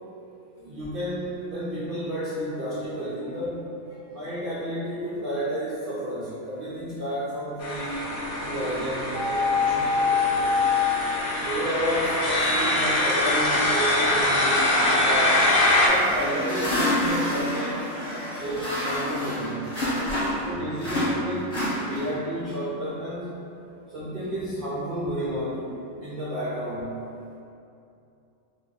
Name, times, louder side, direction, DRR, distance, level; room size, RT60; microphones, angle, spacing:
voice 1, 0.5-3.7 4.1-10.6 11.4-15.5 15.8-18.0 18.3-19.7 20.5-23.4 23.9-27.0, equal, 75° right, -8 dB, 0.5 m, -31 dB
sound 1, 7.6-15.9, left 1 dB, 85° left, 1.1 m, -24 dB
sound 2, 9.1-10.7, left 5 dB, 20° right, 0.8 m, -23 dB
voice 2, 10.0-10.6 18.3-18.4 20.4-20.6 23.7-23.8 24.2-24.5, left 1 dB, 55° left, -9 dB, 0.9 m, -50 dB
sound 3, 15.7-20.5 20.8-22.3, left 1 dB, 25° left, 1.0 m, -28 dB
2.5 x 2.2 x 3.6 m, 2.7 s
omnidirectional pair, 1.5 m